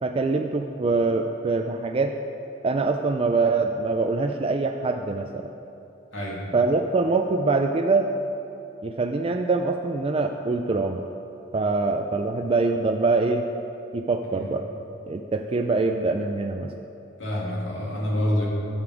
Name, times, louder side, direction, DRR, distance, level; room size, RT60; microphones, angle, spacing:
voice 1, 0.0-2.1 2.6-5.5 6.5-8.1 8.8-11.0 11.5-13.5 13.9-14.6 15.1-16.7, right 3 dB, 30° right, 4 dB, 0.3 m, -24 dB
voice 2, 6.1-6.5 14.3-14.5 17.2-18.5, left 1 dB, 75° left, -4 dB, 2.2 m, -27 dB
12.0 x 6.8 x 4.9 m, 2.8 s
head